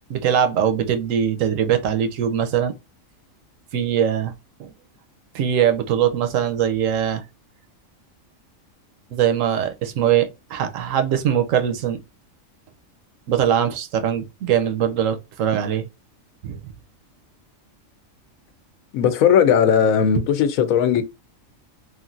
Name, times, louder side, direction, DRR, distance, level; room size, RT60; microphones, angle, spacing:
voice 1, 0.1-2.7 3.7-4.3 4.6-4.7 5.3-7.2 9.1-12.0 13.3-15.9 16.4-16.7, right 9 dB, 75° right, 1.0 m, -21 dB
voice 2, 18.9-21.0, left 8 dB, 85° left, 1.0 m, -17 dB
3.1 x 2.5 x 2.4 m
omnidirectional pair, 1.4 m